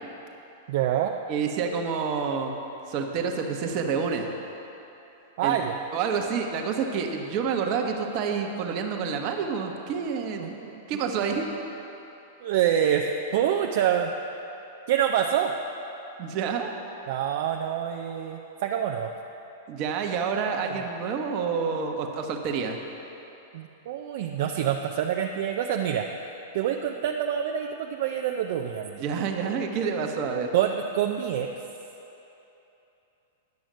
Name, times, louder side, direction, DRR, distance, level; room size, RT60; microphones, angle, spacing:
voice 1, 0.7-1.1 5.4-5.8 10.4-10.8 12.4-14.1 14.9-15.5 17.1-19.1 23.5-26.1 26.5-29.0 30.5-31.5, right 9 dB, 60° right, 2 dB, 0.5 m, -26 dB
voice 2, 1.3-2.5 2.9-4.3 5.4-5.6 5.9-11.5 16.2-16.7 19.7-22.8 29.0-30.5, right 6 dB, 45° right, 3 dB, 1.1 m, -28 dB
10.5 x 6.3 x 6.2 m, 3.0 s
hypercardioid pair, 110°, 0 cm